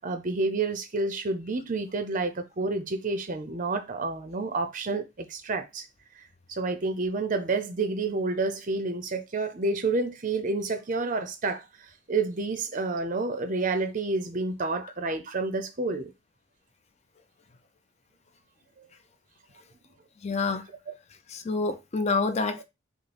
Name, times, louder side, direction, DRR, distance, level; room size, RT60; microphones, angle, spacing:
voice 1, 0.0-5.9 6.2-16.1 20.9-21.0, right 3 dB, 35° right, 0.5 m, -29 dB
voice 2, 20.2-20.7 21.3-22.6, left 3 dB, 30° left, 0.5 m, -27 dB
5.4 x 2.0 x 4.2 m
head